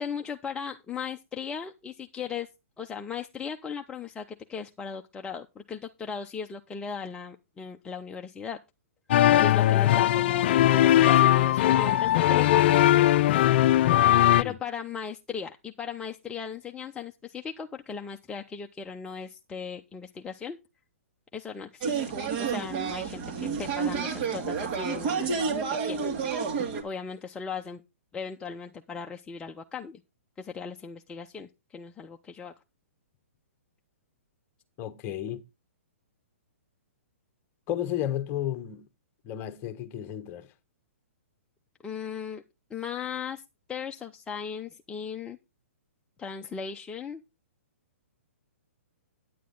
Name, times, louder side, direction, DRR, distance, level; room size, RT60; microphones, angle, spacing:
voice 1, 0.0-2.5 2.8-8.6 9.4-13.0 14.1-20.6 21.3-25.3 25.7-26.0 26.8-27.8 28.1-30.0 30.4-32.5 41.8-42.4 42.7-43.4 43.7-45.4 46.2-47.2, left 6 dB, 10° left, 0.7 m, -37 dB
sound 1, 9.1-14.4, left 13 dB, 50° left, 0.5 m, -20 dB
sound 2, 21.8-26.8, right 5 dB, 40° right, 2.8 m, -30 dB
voice 2, 34.8-35.4 37.7-38.9 39.2-40.5, left 11 dB, 30° left, 1.2 m, -32 dB
9.5 x 9.4 x 3.8 m
hypercardioid pair, 135°, 8 cm